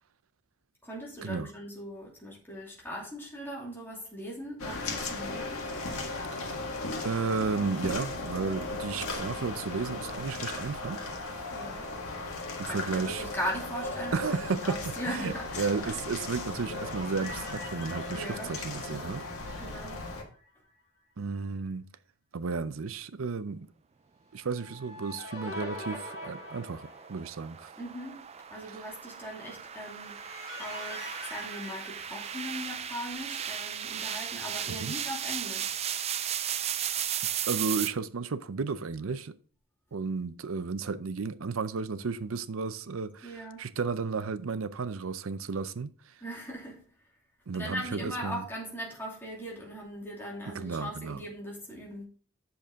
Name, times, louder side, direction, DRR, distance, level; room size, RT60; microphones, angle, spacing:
voice 1, 0.8-5.7 11.5-11.9 12.6-14.2 14.6-15.7 18.1-18.5 19.6-20.0 27.8-28.2 28.5-30.3 30.6-35.8 43.2-43.7 46.2-46.8 47.5-52.1, equal, 10° left, 2.6 m, -39 dB
sound 1, 4.6-20.2, left 2 dB, 85° left, 1.7 m, -37 dB
voice 2, 7.0-11.1 12.6-13.2 14.1-19.6 21.2-21.9 22.3-23.7 24.3-27.7 34.7-34.9 37.5-39.4 39.9-46.1 47.5-48.4 50.5-51.2, right 4 dB, 75° right, 0.6 m, -33 dB
sound 2, 16.2-20.5 20.8-20.9 24.4-27.5 29.6-32.9, left 1 dB, 35° left, 4.6 m, -44 dB
sound 3, 25.8-37.9, right 9 dB, 30° right, 0.4 m, -36 dB
8.0 x 6.7 x 3.6 m
head